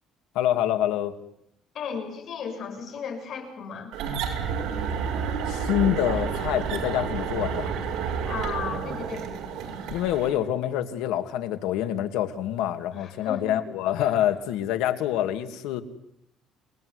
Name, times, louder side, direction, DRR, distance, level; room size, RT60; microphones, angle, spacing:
voice 1, 0.3-1.2 5.5-7.7 9.9-15.8, left 11 dB, 90° left, 7 dB, 2.6 m, -26 dB
voice 2, 1.7-3.9 8.2-9.3 12.9-13.5 14.0-14.1, left 6 dB, 45° left, 4 dB, 7.5 m, -35 dB
sound 1, 3.9-10.4, right 6 dB, 65° right, 6.1 m, -30 dB
28.5 x 20.0 x 9.8 m, 0.77 s
cardioid pair, 165°, 0 cm